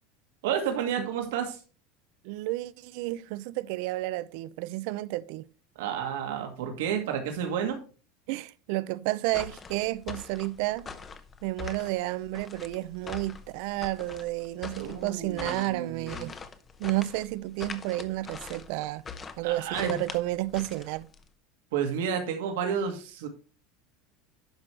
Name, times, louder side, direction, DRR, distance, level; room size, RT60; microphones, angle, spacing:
voice 1, 0.4-1.6 5.8-7.8 14.8-16.3 19.4-20.0 21.7-23.3, right 8 dB, 85° right, 2.0 m, -31 dB
voice 2, 2.2-5.4 8.3-10.9 11.4-16.3 16.8-19.0 19.4-21.1, right 18 dB, 55° right, 0.5 m, -31 dB
sound 1, 9.3-21.3, left 5 dB, 15° left, 0.7 m, -43 dB
10.5 x 6.1 x 3.2 m
supercardioid pair, 180°, 0 cm